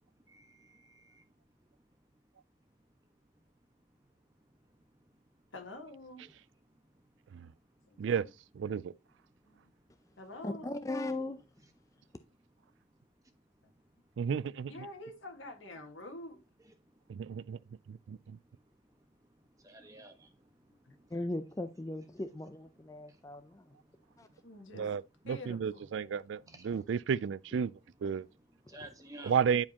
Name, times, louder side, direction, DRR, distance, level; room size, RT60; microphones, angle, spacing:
voice 1, 0.0-5.5 6.2-6.3 6.7-8.1 8.7-10.2 11.6-14.3 16.6-21.3 22.0-22.2 22.7-24.8 26.1-27.1 27.6-29.4, right 1 dB, 20° right, 1.2 m, -60 dB
voice 2, 5.5-6.2 7.9-8.3 9.4-9.6 10.2-10.9 14.7-16.4 20.8-21.3 24.4-24.9 25.2-25.9, left 2 dB, 90° left, 1.7 m, -47 dB
voice 3, 8.6-8.9 14.2-14.7 17.1-17.6 17.9-18.2 24.8-25.0 25.3-27.7 28.0-28.3 29.2-29.7, right 7 dB, 75° right, 0.3 m, -32 dB
voice 4, 10.4-11.4 21.1-23.6 24.2-24.3, left 2 dB, 15° left, 0.4 m, -38 dB
10.5 x 4.8 x 2.9 m
head